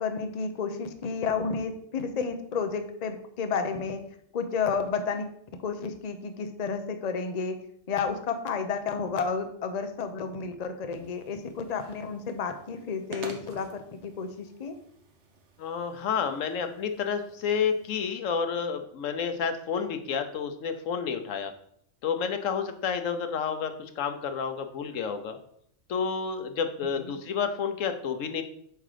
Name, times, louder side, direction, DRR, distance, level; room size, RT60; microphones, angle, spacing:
voice 1, 0.0-4.0 4.3-5.2 5.6-7.6 7.9-14.8 27.1-27.2, left 5 dB, 40° left, 7 dB, 0.7 m, -31 dB
sound 1, 10.9-17.9, right 3 dB, 65° right, 1.3 m, -49 dB
voice 2, 15.6-21.5 22.0-25.4 25.9-28.4, left 6 dB, 85° left, 7 dB, 1.2 m, -30 dB
8.2 x 3.8 x 5.0 m, 0.68 s
omnidirectional pair, 1.3 m